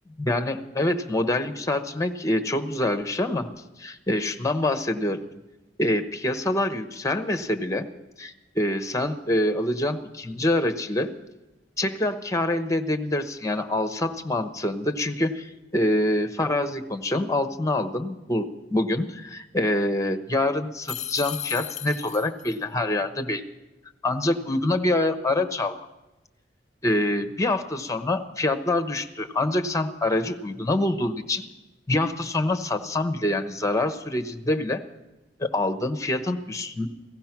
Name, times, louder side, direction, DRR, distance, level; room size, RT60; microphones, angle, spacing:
voice 1, 0.2-3.5 3.8-5.2 5.8-7.9 8.2-11.1 11.8-23.4 24.0-25.8 26.8-31.5 31.9-34.8 35.4-36.9, left 1 dB, 20° left, 8 dB, 1.0 m, -25 dB
sound 1, 20.9-22.6, left 11 dB, 40° left, 0.5 m, -35 dB
17.0 x 14.5 x 5.9 m, 1.0 s
head